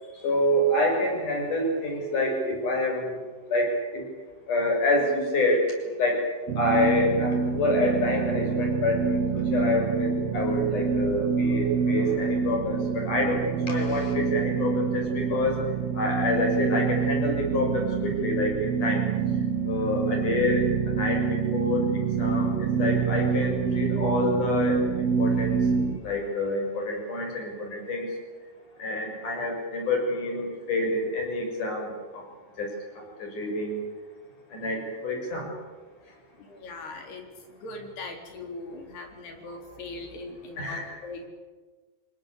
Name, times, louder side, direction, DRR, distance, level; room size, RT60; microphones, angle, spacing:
voice 1, 0.2-3.2 3.5-4.0 4.5-5.7 6.0-6.2 6.6-15.6 15.9-19.0 19.7-21.8 22.2-25.7 26.0-28.1 28.8-32.2 32.6-32.7 33.0-33.8 34.5-35.5 40.6-41.0, left 1 dB, 45° left, 2 dB, 8.3 m, -27 dB
sound 1, 6.5-26.0, right 6 dB, 55° right, 2.0 m, -26 dB
voice 2, 36.4-37.3 37.6-41.3, left 2 dB, 65° left, 4 dB, 5.9 m, -40 dB
28.0 x 22.0 x 8.6 m, 1.3 s
omnidirectional pair, 5.1 m